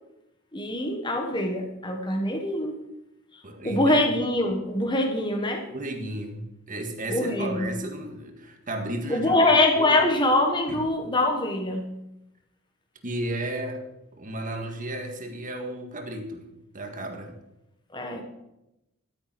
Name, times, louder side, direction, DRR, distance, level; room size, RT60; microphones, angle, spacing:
voice 1, 0.5-2.7 3.6-5.7 7.1-7.7 9.1-12.0 17.9-18.2, left 1 dB, 20° left, 3 dB, 1.4 m, -24 dB
voice 2, 3.4-4.0 5.7-9.4 9.7-10.0 10.7-10.8 13.0-13.8 14.1-16.5 16.7-17.3, right 1 dB, 40° right, 4 dB, 1.9 m, -33 dB
12.5 x 9.2 x 6.0 m, 0.88 s
head